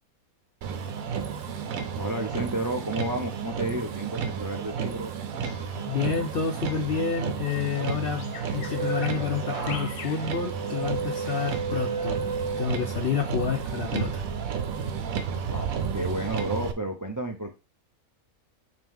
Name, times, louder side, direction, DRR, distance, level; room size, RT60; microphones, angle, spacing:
Motor vehicle (road), 0.6-16.7, right 7 dB, 75° right, 1.2 m, -32 dB
voice 1, 1.9-5.1 15.5-17.5, right 1 dB, 25° right, 3 dB, 0.4 m, -31 dB
Bird vocalization bird call bird song, 5.4-10.9, left 7 dB, 80° left, 1.2 m, -45 dB
voice 2, 5.8-14.2, left 6 dB, 55° left, 6 dB, 0.6 m, -29 dB
sound 1, 8.2-13.2 13.6-14.0, right 4 dB, 50° right, 1.8 m, -34 dB
8.8 x 3.0 x 3.6 m, 0.30 s
omnidirectional pair, 1.5 m